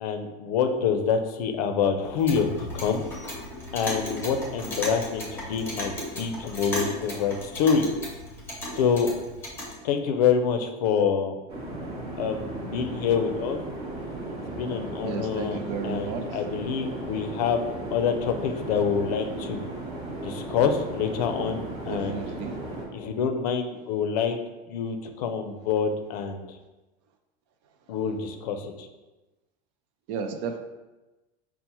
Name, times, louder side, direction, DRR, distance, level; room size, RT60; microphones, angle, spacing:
voice 1, 0.0-3.1 3.7-7.9 8.7-9.1 9.8-11.4 12.2-13.6 14.5-15.6 15.8-17.6 17.9-19.6 20.2-22.2 22.9-24.4 24.7-26.6 27.9-28.9, left 6 dB, 90° left, 6 dB, 0.5 m, -26 dB
Clock, 2.0-9.8, left 1 dB, 10° left, 0.8 m, -35 dB
sound 1, 11.5-22.8, right 2 dB, 25° right, 0.7 m, -36 dB
voice 2, 15.0-16.2 21.9-22.6 30.1-30.6, right 6 dB, 50° right, 6 dB, 0.4 m, -33 dB
5.4 x 2.1 x 2.9 m, 1.1 s
supercardioid pair, 170°, 19 cm